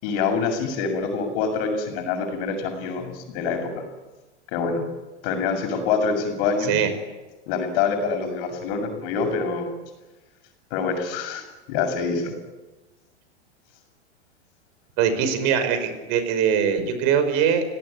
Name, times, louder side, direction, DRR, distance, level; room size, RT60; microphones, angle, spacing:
voice 1, 0.0-3.8 4.5-4.8 5.2-6.8 7.5-9.7 10.7-12.3, left 5 dB, 55° left, 5 dB, 7.1 m, -26 dB
voice 2, 15.0-17.6, right 7 dB, 50° right, 10 dB, 5.7 m, -22 dB
29.5 x 18.0 x 9.9 m, 1.1 s
hypercardioid pair, 105°, 34 cm